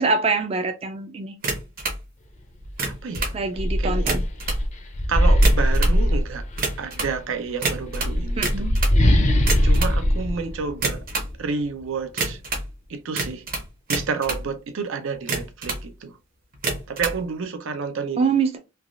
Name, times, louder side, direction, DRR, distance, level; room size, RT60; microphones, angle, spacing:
voice 1, 0.0-1.4 3.3-4.3 8.4-8.8 18.2-18.6, right 4 dB, 30° right, 0.3 m, -24 dB
sound 1, 1.4-2.0 2.6-3.4 3.9-4.6 5.3-6.0 6.6-7.2 7.6-9.0 9.4-10.0 10.7-11.3 12.2-12.7 13.1-14.5 15.1-15.8 16.5-17.2, right 3 dB, 50° right, 0.8 m, -27 dB
sound 2, 2.6-2.7 3.1-6.8 7.7-11.3, equal, 35° left, 0.5 m, -20 dB
voice 2, 2.8-3.3 3.8-4.1 5.1-6.4 6.8-8.7 9.6-11.0 11.4-12.4 12.9-13.4 13.9-16.1 16.9-18.3, right 5 dB, 85° right, 0.5 m, -30 dB
3.3 x 2.3 x 2.4 m
head